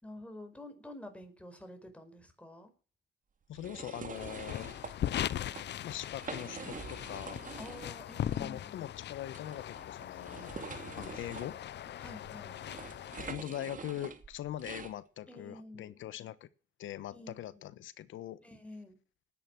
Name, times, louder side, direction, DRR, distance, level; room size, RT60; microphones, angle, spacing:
voice 1, 0.0-2.7 7.6-8.9 12.0-12.6 15.3-16.0 17.1-17.7 18.4-19.0, left 1 dB, 5° left, 6 dB, 4.7 m, -49 dB
voice 2, 3.5-4.7 5.8-7.4 8.4-10.6 10.9-11.6 13.2-16.5 16.8-18.4, left 12 dB, 80° left, 17 dB, 1.2 m, -42 dB
sound 1, 3.5-4.9 5.4-5.6 6.1-8.0 8.3-8.4 9.3-14.9, right 5 dB, 40° right, 2.3 m, -45 dB
sound 2, 4.1-13.3, left 11 dB, 60° left, 0.7 m, -40 dB
19.0 x 10.0 x 6.3 m, 0.39 s
cardioid pair, 90°, 20 cm